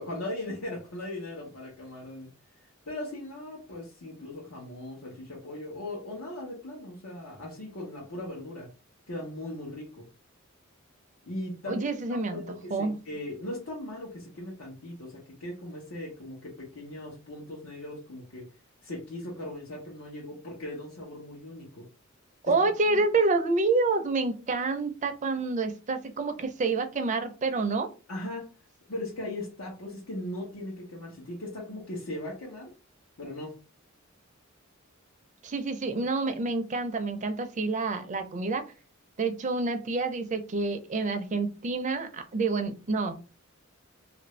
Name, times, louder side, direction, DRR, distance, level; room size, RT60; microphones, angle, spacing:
voice 1, 0.0-2.3 2.6-8.7 9.1-10.1 11.2-18.5 18.8-21.9 22.9-23.0 28.1-28.5 28.9-32.7 33.2-33.6, left 1 dB, 85° left, -4 dB, 0.9 m, -39 dB
voice 2, 11.7-12.4 12.7-12.9 22.4-27.9 35.4-38.6 39.2-43.1, right 3 dB, 35° right, 8 dB, 0.5 m, -28 dB
2.9 x 2.5 x 3.1 m, 0.33 s
head